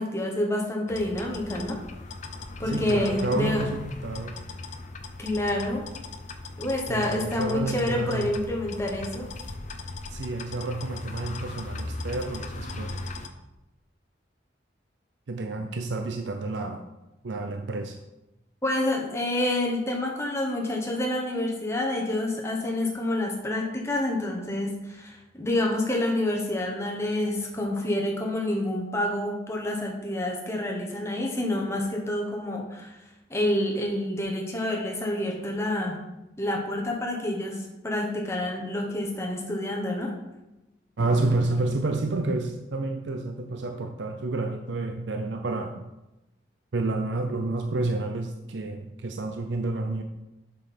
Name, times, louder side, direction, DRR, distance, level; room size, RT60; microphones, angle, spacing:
voice 1, 0.0-1.8 2.6-3.6 5.2-5.9 6.6-9.3 18.6-33.0 33.3-36.0 36.4-40.1, left 1 dB, 15° left, -1 dB, 1.1 m, -28 dB
sound 1, 0.9-13.3, left 3 dB, 40° left, 0.6 m, -38 dB
voice 2, 2.6-4.4 6.9-8.3 10.1-13.1 15.3-16.8 17.2-18.0 41.0-45.9 46.7-50.0, right 2 dB, 70° right, 5 dB, 0.5 m, -29 dB
7.9 x 5.4 x 4.3 m, 0.98 s
head